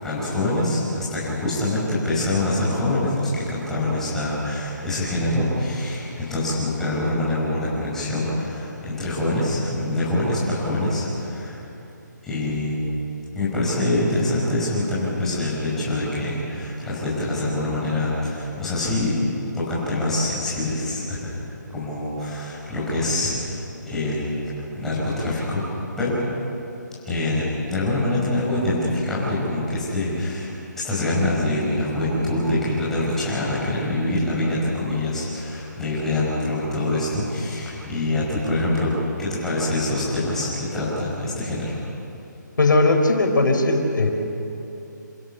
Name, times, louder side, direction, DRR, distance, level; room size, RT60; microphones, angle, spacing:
voice 1, 0.0-11.6 12.2-12.8 13.4-19.2 19.5-21.4 21.7-25.6 26.0-26.2 27.0-30.5 30.7-38.9 39.2-41.8, left 1 dB, 5° left, -9 dB, 5.3 m, -25 dB
voice 2, 42.6-44.1, left 2 dB, 90° left, 4 dB, 4.4 m, -18 dB
28.0 x 16.0 x 6.9 m, 2.9 s
hypercardioid pair, 170°, 10 cm